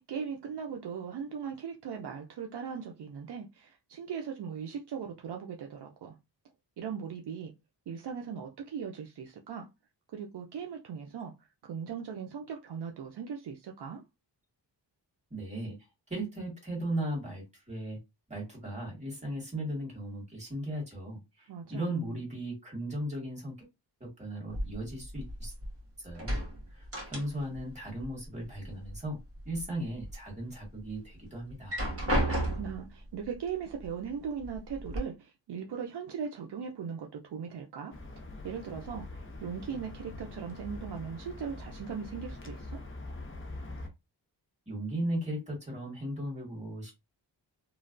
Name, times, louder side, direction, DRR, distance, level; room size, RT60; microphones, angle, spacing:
voice 1, 0.0-6.2 6.8-7.5 7.9-9.7 10.1-11.3 11.6-14.0 21.5-22.0 32.1-37.9 38.4-42.8, right 7 dB, 65° right, 0.6 m, -39 dB
voice 2, 15.3-15.8 16.1-18.0 18.3-23.5 24.0-25.5 26.0-26.4 26.7-29.2 29.5-31.9 44.7-46.9, right 1 dB, 15° right, 1.9 m, -37 dB
sound 1, 24.5-25.8 26.1-27.7 27.9-28.9 29.4-30.1 30.6-30.7 31.5-32.9 33.8-33.9 34.4-35.0, right 1 dB, 30° right, 1.4 m, -33 dB
sound 2, 37.9-43.9, left 2 dB, 30° left, 0.7 m, -43 dB
3.1 x 2.2 x 2.5 m
wide cardioid pair, 90°, 43 cm